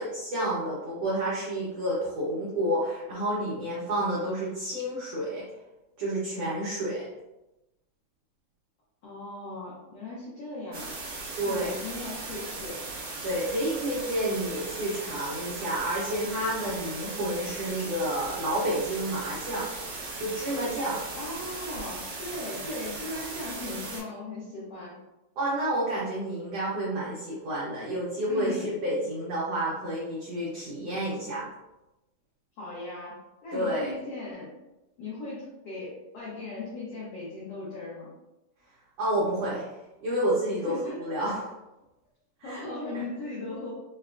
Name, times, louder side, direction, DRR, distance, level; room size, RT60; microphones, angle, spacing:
voice 1, 0.0-5.5 6.0-7.1 11.4-11.7 13.2-19.7 20.2-21.0 25.4-31.5 33.5-33.9 39.0-39.7 40.0-40.7 41.0-41.5 42.4-42.6, right 1 dB, 85° right, -7 dB, 1.4 m, -30 dB
voice 2, 9.0-11.0 11.4-12.8 21.1-25.0 28.3-28.7 32.6-34.5 35.0-38.1 40.5-41.1 42.4-43.7, left 2 dB, 90° left, -7 dB, 1.3 m, -38 dB
sound 1, 10.7-24.0, right 3 dB, 60° right, 1.8 m, -38 dB
5.3 x 2.2 x 2.4 m, 0.97 s
omnidirectional pair, 4.0 m